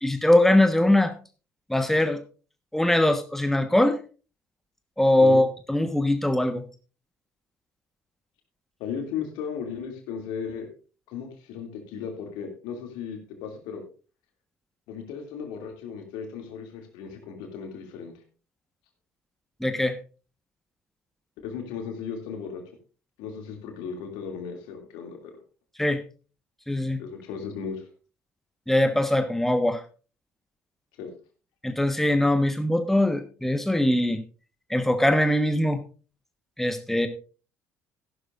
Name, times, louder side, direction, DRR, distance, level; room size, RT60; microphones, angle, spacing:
voice 1, 0.0-1.1 1.7-2.2 2.7-4.0 5.0-6.6 19.6-20.0 25.8-26.0 26.7-27.0 28.7-29.8 31.6-34.2 34.7-35.8 36.6-37.1, left 1 dB, 5° left, 8 dB, 1.2 m, -22 dB
voice 2, 8.8-10.7 11.1-13.8 14.9-18.1 21.4-22.6 23.2-25.2 27.0-27.9 31.0-31.1, left 6 dB, 65° left, 4 dB, 2.5 m, -36 dB
14.5 x 12.0 x 2.5 m, 0.35 s
figure-of-eight pair, 55°, 8 cm